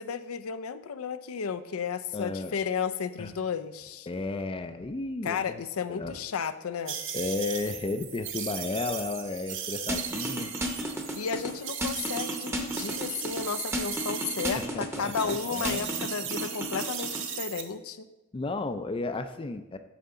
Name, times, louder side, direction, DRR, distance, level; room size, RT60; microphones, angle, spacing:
voice 1, 0.0-4.1 5.2-7.0 11.1-18.1, left 6 dB, 90° left, 11 dB, 0.5 m, -33 dB
voice 2, 2.1-2.5 3.2-3.3 4.1-5.6 5.9-6.1 7.1-10.5 14.5-16.3 18.3-19.8, left 3 dB, 25° left, 8 dB, 0.4 m, -33 dB
sound 1, 6.9-14.7 14.9-17.6, right 8 dB, 65° right, 0.9 m, -37 dB
sound 2, 9.9-11.5 11.8-13.4 13.7-15.3 15.6-17.2, equal, 10° right, 0.9 m, -33 dB
9.1 x 7.0 x 3.8 m, 1.1 s
head